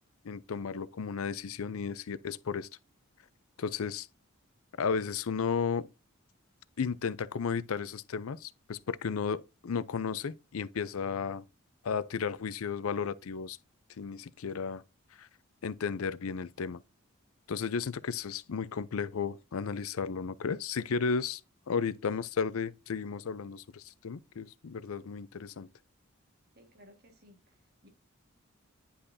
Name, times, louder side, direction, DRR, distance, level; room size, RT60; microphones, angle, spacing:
voice 1, 0.2-2.7 3.6-4.1 4.8-5.9 6.8-11.4 11.8-13.6 14.0-14.8 15.1-15.3 15.6-16.8 17.5-21.4 21.7-25.7, left 5 dB, 90° left, 0.5 m, -34 dB
voice 2, 26.5-27.9, left 1 dB, 50° right, 1.7 m, -59 dB
10.0 x 5.5 x 2.7 m
head